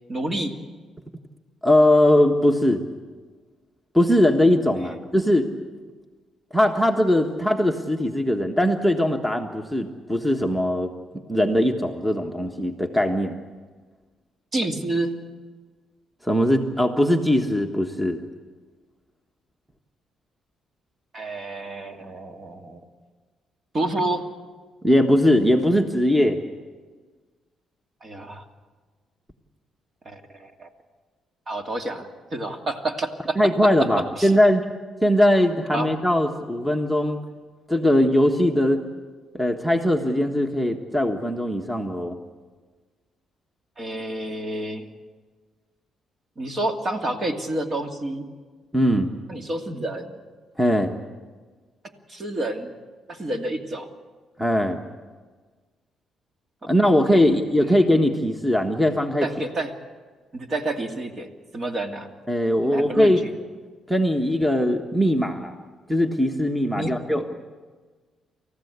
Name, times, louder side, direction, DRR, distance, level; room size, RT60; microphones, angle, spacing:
voice 1, 0.1-0.5 4.8-5.0 14.5-15.2 21.1-22.8 23.7-24.2 28.0-28.4 30.1-30.7 31.5-33.7 34.1-34.3 35.7-35.9 43.8-44.9 46.4-48.3 49.3-50.2 52.1-52.7 53.1-53.9 59.2-59.7 60.3-62.1 62.6-63.3 66.8-67.0, right 2 dB, 40° right, 4 dB, 2.4 m, -29 dB
voice 2, 1.6-2.8 3.9-5.5 6.5-10.9 11.3-13.4 16.2-18.2 24.8-26.4 33.4-34.6 35.0-37.2 37.7-38.8 39.3-42.2 48.7-49.1 50.6-51.0 54.4-54.8 56.6-59.3 62.3-63.2 63.9-65.6 65.9-67.3, left 1 dB, 5° right, 5 dB, 1.5 m, -20 dB
28.5 x 14.5 x 8.2 m, 1.4 s
cardioid pair, 90°, 0 cm